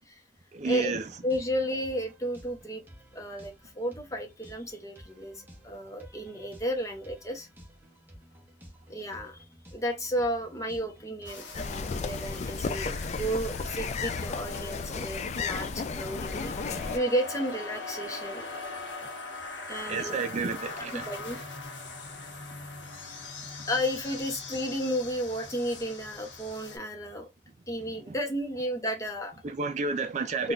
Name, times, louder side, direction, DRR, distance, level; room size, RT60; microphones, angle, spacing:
voice 1, 0.5-1.1 19.9-21.1 28.1-28.2 29.4-30.5, right 4 dB, 40° right, 0.4 m, -31 dB
sound 1, 0.9-12.2, equal, 10° right, 0.9 m, -54 dB
voice 2, 1.2-2.8 3.1-7.5 8.9-9.4 9.7-18.5 19.7-20.1 20.9-21.4 23.7-27.3 27.7-29.3 30.4-30.5, equal, 20° left, 0.8 m, -33 dB
sound 2, 11.2-26.8, left 3 dB, 90° left, 1.1 m, -41 dB
sound 3, 11.5-17.0, left 4 dB, 40° left, 0.3 m, -33 dB
3.7 x 2.4 x 2.4 m
head